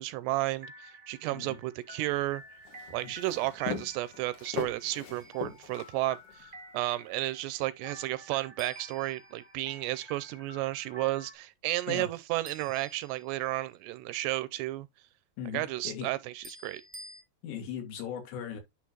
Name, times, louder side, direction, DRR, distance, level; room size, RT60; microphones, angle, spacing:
voice 1, 0.0-2.4 2.9-14.9 15.5-16.8, right 17 dB, 85° right, 2.5 m, -33 dB
sound 1, 0.6-11.3, right 1 dB, 20° right, 1.2 m, -51 dB
Walk footsteps, 2.1-6.4, left 6 dB, 60° left, 2.3 m, -40 dB
sound 2, 5.2-5.6 8.6-9.9 12.4-13.7 16.4-17.2, equal, 5° right, 1.3 m, -51 dB
voice 2, 15.4-16.1 17.4-18.6, left 8 dB, 80° left, 4.2 m, -38 dB
10.5 x 3.9 x 2.9 m
omnidirectional pair, 5.1 m